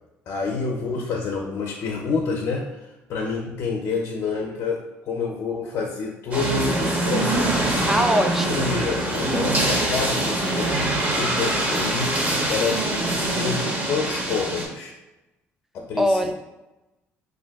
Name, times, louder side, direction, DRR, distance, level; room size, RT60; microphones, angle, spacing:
voice 1, 0.3-2.7 3.1-7.8 8.5-10.7 11.1-12.1 12.5-12.8 13.0-14.9 15.9-16.3, left 5 dB, 60° left, -1 dB, 0.4 m, -28 dB
sound 1, 6.3-14.7, right 1 dB, 35° right, 0.7 m, -24 dB
voice 2, 7.9-8.7 16.0-16.3, equal, 5° right, 5 dB, 0.3 m, -21 dB
2.5 x 2.5 x 3.4 m, 0.99 s
cardioid pair, 110°, 5 cm